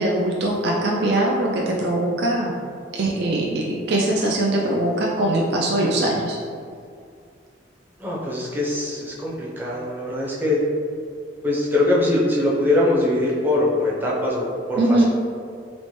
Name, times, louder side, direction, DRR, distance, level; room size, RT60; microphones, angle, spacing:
voice 1, 0.0-2.5 2.9-6.4 14.8-15.0, right 1 dB, 60° right, -2 dB, 0.4 m, -21 dB
voice 2, 8.0-10.6 11.4-14.4 14.7-15.0, left 1 dB, 10° right, -6 dB, 0.6 m, -22 dB
4.2 x 2.1 x 3.0 m, 2.3 s
head